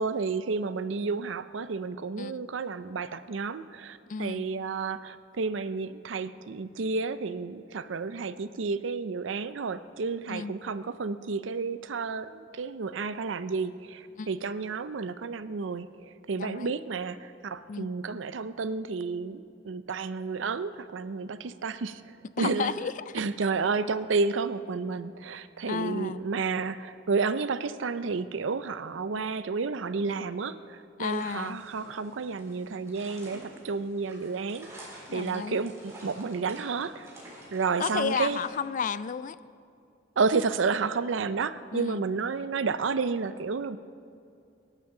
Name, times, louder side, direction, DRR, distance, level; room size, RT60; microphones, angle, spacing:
voice 1, 0.0-22.7 23.1-34.7 35.1-37.1 37.5-38.4 40.2-43.8, right 4 dB, 85° right, 13 dB, 0.5 m, -31 dB
voice 2, 4.1-4.4 10.3-10.5 14.2-14.3 16.3-16.7 17.7-17.9 22.4-23.2 25.7-26.2 31.0-31.6 35.1-35.6 37.8-39.4 41.7-42.0, left 6 dB, 45° left, 16 dB, 0.4 m, -32 dB
sound 1, 31.0-38.5, right 1 dB, 15° right, 3.9 m, -50 dB
23.5 x 11.5 x 3.8 m, 2.5 s
head